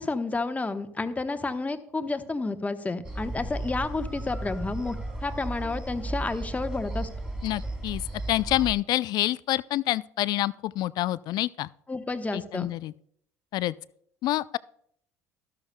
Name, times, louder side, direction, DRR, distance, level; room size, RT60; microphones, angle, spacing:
voice 1, 0.0-7.1 11.9-12.7, left 3 dB, 20° left, 1.0 m, -30 dB
sound 1, 3.0-8.7, right 1 dB, 10° right, 2.4 m, -35 dB
voice 2, 7.4-8.0 8.3-11.7 12.3-12.9 13.5-13.7 14.2-14.6, left 15 dB, 55° left, 0.4 m, -27 dB
13.0 x 12.5 x 2.2 m
hypercardioid pair, 65°, 8 cm